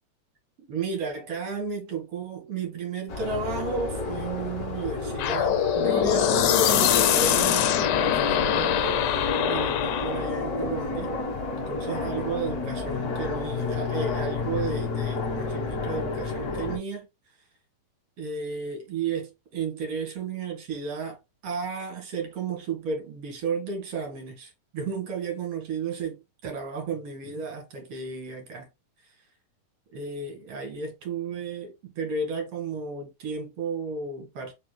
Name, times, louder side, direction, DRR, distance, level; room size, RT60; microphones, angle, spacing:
voice 1, 0.7-11.1 11.6-17.1 18.2-28.7 29.9-34.5, right 4 dB, 50° right, 2.7 m, -33 dB
sound 1, 3.1-16.8, left 4 dB, 55° left, 1.0 m, -31 dB
sound 2, 5.2-10.3, left 10 dB, 75° left, 2.0 m, -23 dB
5.0 x 4.4 x 2.2 m
omnidirectional pair, 3.9 m